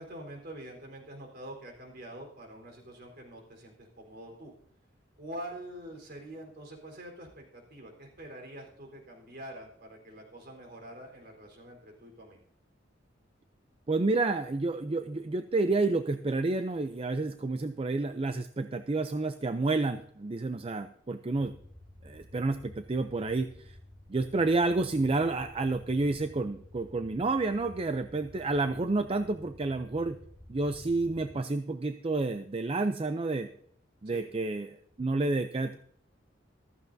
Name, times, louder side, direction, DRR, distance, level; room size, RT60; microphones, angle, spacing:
voice 1, 0.0-4.5 5.2-12.4 21.3-21.4 34.1-34.2, right 1 dB, 55° right, 1 dB, 4.0 m, -45 dB
voice 2, 13.9-21.5 22.0-23.8 24.1-30.2 30.5-33.5 34.0-35.8, right 3 dB, 30° right, 9 dB, 0.5 m, -30 dB
sound 1, 21.3-31.3, left 1 dB, 10° right, 4.7 m, -52 dB
14.5 x 14.0 x 2.7 m, 0.66 s
head